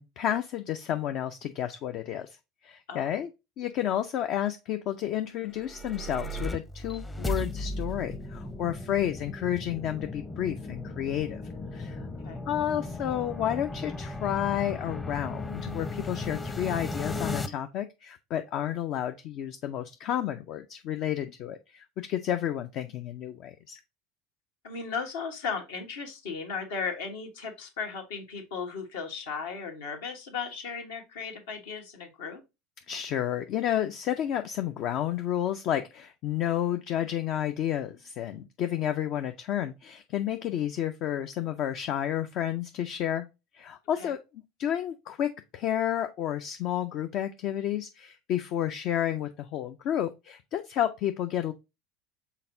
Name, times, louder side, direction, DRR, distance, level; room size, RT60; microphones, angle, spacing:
voice 1, 0.0-2.4 2.6-3.3 3.6-11.4 11.7-12.1 12.5-23.8 32.9-43.3 43.5-51.5, left 11 dB, 55° left, 0.4 m, -31 dB
voice 2, 2.9-3.2 12.2-12.4 24.6-32.4 44.0-44.1, left 5 dB, 75° left, 1.1 m, -36 dB
sound 1, 5.4-17.5, left 2 dB, 20° left, 0.7 m, -36 dB
5.7 x 3.6 x 2.6 m
hypercardioid pair, 75°, 0 cm